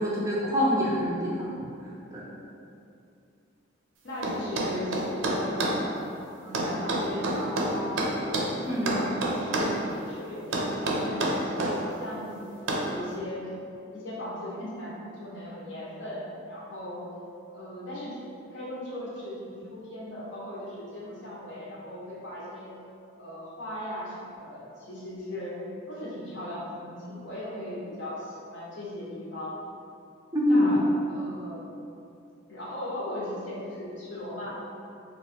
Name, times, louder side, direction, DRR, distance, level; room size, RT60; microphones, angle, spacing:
voice 1, 0.0-1.5 2.1-2.3 8.6-9.0 11.6-11.7 30.3-30.8, left 1 dB, 15° right, -6 dB, 0.4 m, -25 dB
voice 2, 4.0-6.0 6.4-8.6 9.0-13.5 13.9-17.1 17.5-18.2 18.5-22.8 23.1-25.6 25.9-29.6 30.5-30.8 31.1-31.6 32.5-34.5, left 1 dB, 65° left, -6 dB, 0.8 m, -38 dB
sound 1, 4.2-5.8 6.5-8.5 8.9-9.8 10.5-11.8 12.7-12.9, right 1 dB, 75° right, 0.4 m, -27 dB
2.9 x 2.3 x 4.2 m, 2.6 s
head